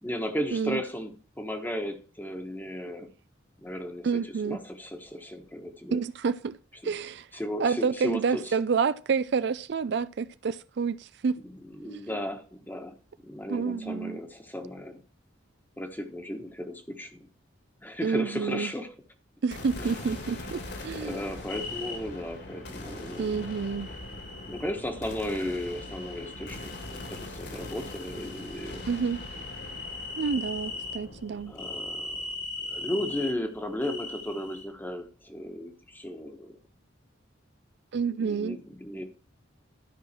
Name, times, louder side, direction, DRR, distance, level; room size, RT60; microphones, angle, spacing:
voice 1, 0.0-3.1 3.6-6.0 6.8-6.9 7.3-8.5 11.4-13.0 13.2-15.0 15.8-17.3 17.8-18.9 19.8-20.0 20.8-23.5 24.5-28.8 31.5-32.3 32.6-36.6 38.2-39.0, left 1 dB, 10° left, 1.3 m, -35 dB
voice 2, 4.0-4.6 5.9-6.6 6.8-7.3 7.6-11.4 11.8-12.2 13.5-14.2 18.0-18.7 19.4-21.2 23.2-23.9 28.9-29.2 30.2-31.5 37.9-38.6, right 5 dB, 60° right, 0.4 m, -29 dB
sound 1, 19.5-33.8, left 1 dB, 60° left, 2.2 m, -42 dB
sound 2, 21.5-22.0 23.1-24.7 25.3-27.3 27.6-31.0 31.5-33.3 33.8-34.6, left 3 dB, 85° left, 2.8 m, -40 dB
12.5 x 5.6 x 4.4 m
head